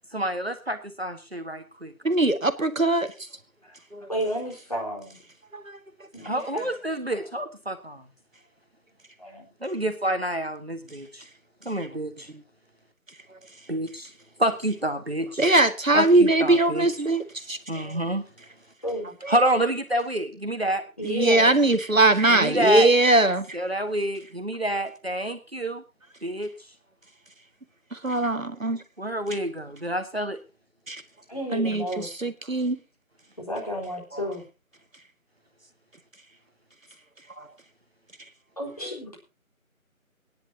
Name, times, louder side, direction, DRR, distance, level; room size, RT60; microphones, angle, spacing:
voice 1, 0.1-1.9 6.2-8.0 9.6-11.2 11.6-12.3 13.7-14.1 14.4-15.4 15.9-16.9 17.7-18.2 19.3-20.8 22.3-22.9 23.5-25.8 26.2-26.5 29.0-30.4, right 1 dB, 45° right, 7 dB, 1.6 m, -28 dB
voice 2, 2.0-3.1 3.9-4.1 5.5-5.8 15.4-18.0 19.2-19.3 21.0-23.6 27.9-28.8 30.9-31.0 31.5-32.8 37.4-37.5, right 2 dB, 65° right, 9 dB, 1.9 m, -21 dB
voice 3, 4.1-5.2 6.1-6.7 9.2-9.5 18.8-19.2 21.0-21.5 31.3-32.1 33.4-34.4 38.6-39.2, equal, 25° left, -1 dB, 4.3 m, -32 dB
23.5 x 10.5 x 2.8 m, 0.30 s
figure-of-eight pair, 175°, 42 cm